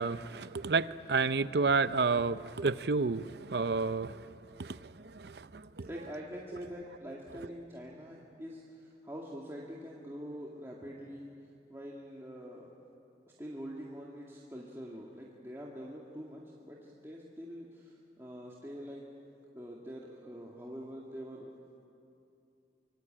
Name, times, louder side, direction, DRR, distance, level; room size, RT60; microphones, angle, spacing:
voice 1, 0.0-4.3 4.5-5.9, right 4 dB, 70° right, 14 dB, 0.7 m, -31 dB
voice 2, 5.8-11.3 11.7-12.7 13.4-19.0 19.5-21.5, equal, 15° right, -4 dB, 2.1 m, -45 dB
25.0 x 23.5 x 8.8 m, 2.6 s
head